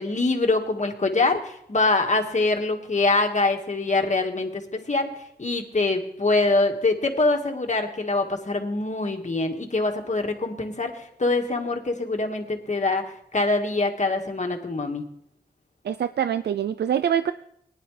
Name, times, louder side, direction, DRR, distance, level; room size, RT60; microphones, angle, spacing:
voice 1, 0.0-4.6 4.9-5.1 5.4-15.0, left 3 dB, 45° left, 3 dB, 1.8 m, -24 dB
voice 2, 15.8-17.3, right 9 dB, 85° right, 12 dB, 0.4 m, -24 dB
18.5 x 10.5 x 3.3 m, 0.75 s
cardioid pair, 65°, 17 cm